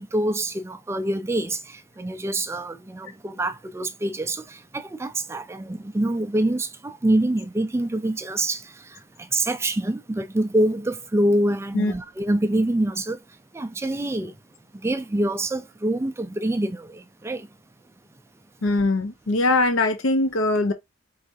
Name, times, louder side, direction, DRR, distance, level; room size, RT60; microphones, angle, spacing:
voice 1, 0.0-13.2 13.5-14.3 14.8-17.5, right 1 dB, 15° right, 0.3 m, -25 dB
voice 2, 18.6-20.7, left 2 dB, 85° left, 0.7 m, -21 dB
4.8 x 3.2 x 2.6 m
head